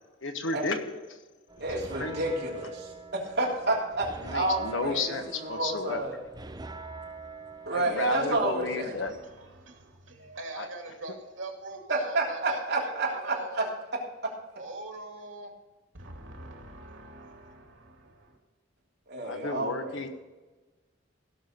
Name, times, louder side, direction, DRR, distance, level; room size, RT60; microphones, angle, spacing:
voice 1, 0.2-1.2 2.0-2.4 4.2-6.0 7.7-9.1 10.6-10.7 19.2-20.1, left 3 dB, 85° left, 6 dB, 1.4 m, -32 dB
sound 1, 1.5-9.1, right 3 dB, 20° right, 0.6 m, -44 dB
voice 2, 1.6-6.2 7.6-9.0 11.9-13.7 14.2-14.3 19.1-20.0, right 2 dB, 60° right, -3 dB, 3.3 m, -30 dB
voice 3, 9.1-13.7 14.5-15.5 15.9-18.4, right 2 dB, 90° right, 1 dB, 2.7 m, -42 dB
16.5 x 6.4 x 5.2 m, 1.2 s
head